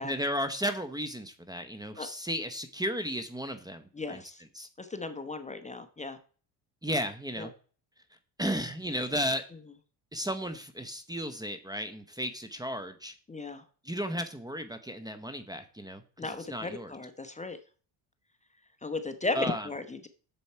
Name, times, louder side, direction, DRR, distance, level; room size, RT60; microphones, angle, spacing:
voice 1, 0.0-4.2 4.5-4.7 6.8-7.5 8.4-9.4 10.1-13.1 13.8-16.9 19.3-19.7, equal, 10° right, 9 dB, 0.9 m, -34 dB
voice 2, 3.9-4.4 4.8-6.2 7.4-7.5 13.3-13.6 16.2-17.6 18.8-20.1, left 3 dB, 15° left, 9 dB, 0.9 m, -36 dB
7.9 x 7.1 x 4.4 m, 0.39 s
supercardioid pair, 90°, 44 cm